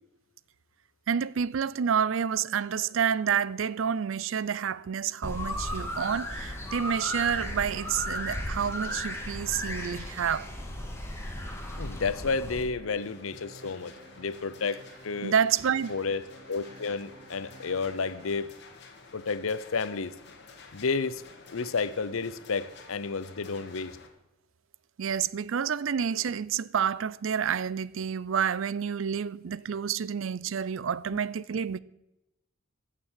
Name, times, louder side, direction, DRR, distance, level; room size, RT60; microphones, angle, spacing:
voice 1, 1.1-10.5 15.2-15.9 25.0-31.8, right 7 dB, 70° right, 0.4 m, -29 dB
sound 1, 5.1-18.4, right 1 dB, 35° right, 4.1 m, -53 dB
sound 2, 5.2-12.6, left 1 dB, 10° left, 1.8 m, -35 dB
voice 2, 11.8-15.4 15.9-18.5 19.1-20.1 20.7-21.2 21.5-24.0, left 4 dB, 80° left, 0.7 m, -31 dB
sound 3, 13.0-24.1, left 4 dB, 55° left, 1.9 m, -51 dB
15.0 x 6.8 x 7.5 m
head